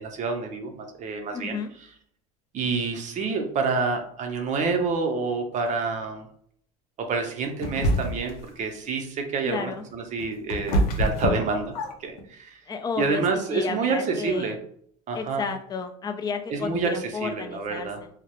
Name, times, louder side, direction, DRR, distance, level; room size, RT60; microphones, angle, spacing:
voice 1, 0.0-1.6 2.5-6.3 7.1-11.7 12.0-12.6 13.0-14.6 15.1-15.4 16.5-18.0, right 4 dB, 40° right, 4 dB, 0.6 m, -28 dB
voice 2, 1.3-1.7 9.4-9.8 12.7-13.2 13.5-14.6 15.1-18.1, left 5 dB, 20° left, 6 dB, 0.4 m, -32 dB
sound 1, 7.6-8.4 9.9-12.2, equal, 90° left, 0.5 m, -25 dB
2.2 x 2.0 x 2.9 m, 0.63 s
supercardioid pair, 100°, 19 cm